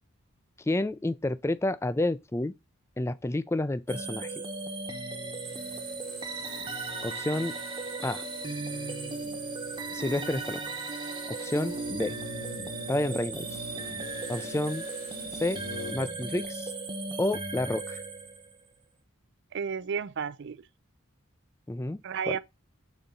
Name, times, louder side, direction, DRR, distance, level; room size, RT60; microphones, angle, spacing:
voice 1, 0.7-2.5 3.0-4.3 7.0-7.5 8.0-8.2 9.9-10.6 11.3-12.1 12.9-13.7 14.3-14.8 15.4-15.6 15.9-16.7 17.2-18.0 21.7-22.4, left 2 dB, 15° left, 0.4 m, -30 dB
sound 1, 3.9-18.6, right 3 dB, 25° right, 1.0 m, -37 dB
sound 2, 5.4-16.1 16.4-16.5, left 2 dB, 80° left, 3.1 m, -45 dB
voice 2, 19.5-20.6 22.0-22.4, right 6 dB, 55° right, 0.4 m, -32 dB
7.2 x 4.0 x 3.7 m
head